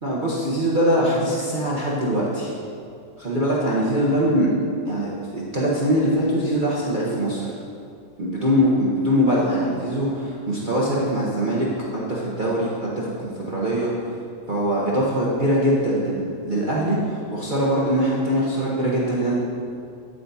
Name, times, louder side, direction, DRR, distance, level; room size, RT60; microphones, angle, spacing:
voice 1, 0.0-2.5 3.2-4.5 4.9-7.4 8.2-11.7 11.9-13.9 14.5-19.3, equal, 35° right, -7 dB, 0.9 m, -22 dB
9.0 x 8.0 x 2.7 m, 2.4 s
omnidirectional pair, 1.9 m